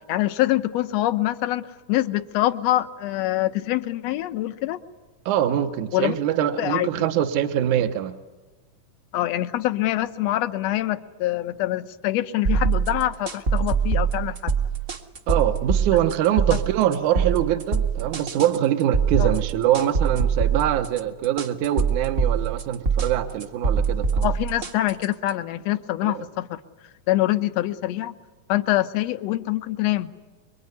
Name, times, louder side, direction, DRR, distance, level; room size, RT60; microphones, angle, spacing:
voice 1, 0.1-4.8 5.9-6.2 6.6-7.1 9.1-14.5 16.3-16.4 19.2-19.3 24.2-26.6 27.1-28.2 28.5-30.2, left 15 dB, 65° left, 10 dB, 1.9 m, -25 dB
voice 2, 5.3-8.2 15.3-24.3 26.0-26.3, right 11 dB, 75° right, 8 dB, 2.5 m, -23 dB
sound 1, 12.4-25.3, right 6 dB, 40° right, 1.1 m, -24 dB
25.5 x 23.5 x 9.6 m, 1.2 s
omnidirectional pair, 3.7 m